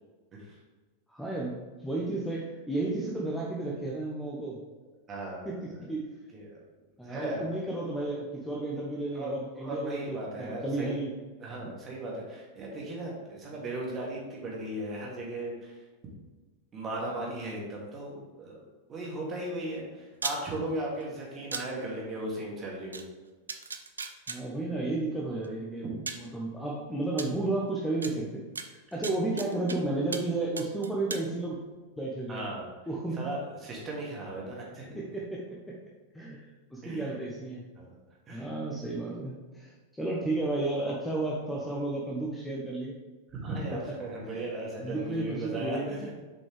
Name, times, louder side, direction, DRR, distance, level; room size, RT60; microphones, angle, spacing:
voice 1, 1.1-1.5 1.8-4.6 5.4-6.1 7.0-11.1 24.3-31.6 32.0-32.4 32.9-33.3 34.9-35.8 36.1-37.6 38.3-42.9 43.7-43.9 44.3-44.4 44.8-46.1, right 2 dB, 5° left, -3 dB, 1.0 m, -33 dB
voice 2, 5.1-5.8 6.3-6.6 7.0-7.5 9.1-11.0 11.4-15.8 16.7-18.6 18.9-23.0 32.3-32.7 33.2-35.2 36.8-37.2 37.8-37.9 38.3-38.5 43.3-46.1, right 1 dB, 25° right, -3 dB, 2.2 m, -37 dB
sound 1, 20.1-20.4 21.5-21.6 22.9-23.0 23.5-24.4 25.4-25.5 26.1-26.3 27.2-27.3 28.0-28.1 28.6-29.8 30.1-30.3 30.6-31.2, right 4 dB, 75° right, 0.5 m, -36 dB
7.2 x 5.2 x 3.4 m, 1.3 s
figure-of-eight pair, 90°, 0 cm